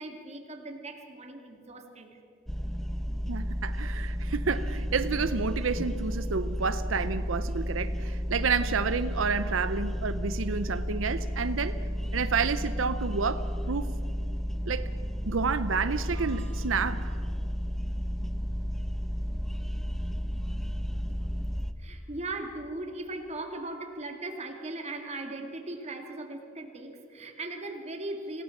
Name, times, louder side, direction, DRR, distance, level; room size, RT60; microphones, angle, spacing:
voice 1, 0.0-2.1 21.8-28.4, right 2 dB, 35° right, 3 dB, 2.5 m, -38 dB
sound 1, 2.5-21.7, equal, ahead, 0.8 m, -32 dB
voice 2, 3.3-11.8 12.1-13.9 14.7-14.9 15.3-17.2, right 5 dB, 90° right, 12 dB, 0.7 m, -30 dB
sound 2, 16.1-17.1, right 8 dB, 55° right, 4.4 m, -53 dB
27.5 x 17.0 x 7.2 m, 2.7 s
head